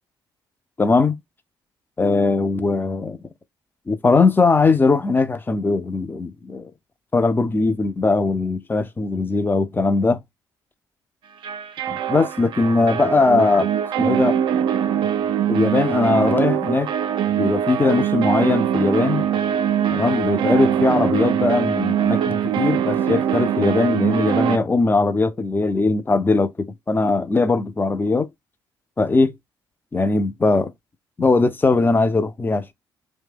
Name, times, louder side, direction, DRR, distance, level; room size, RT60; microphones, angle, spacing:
voice 1, 0.8-1.2 2.0-3.2 3.9-6.7 7.1-10.2 11.9-13.7 14.0-14.4 15.5-16.9 17.4-19.3 19.9-28.3 29.0-29.3 29.9-30.7 31.2-32.7, left 3 dB, 20° left, 0.4 m, -20 dB
sound 1, 11.4-24.6, right 9 dB, 45° right, 0.3 m, -22 dB
2.6 x 2.1 x 3.4 m
figure-of-eight pair, 45°, 11 cm